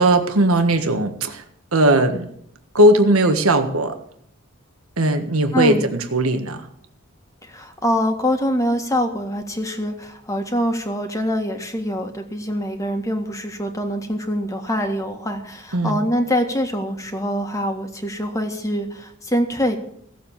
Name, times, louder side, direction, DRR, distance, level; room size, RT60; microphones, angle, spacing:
voice 1, 0.0-1.4 1.7-2.3 2.7-4.0 5.0-6.7 15.7-16.0, right 1 dB, 85° right, 6 dB, 1.6 m, -18 dB
voice 2, 5.5-5.9 7.4-19.8, equal, 15° left, 4 dB, 1.8 m, -24 dB
17.0 x 7.7 x 7.3 m, 0.68 s
head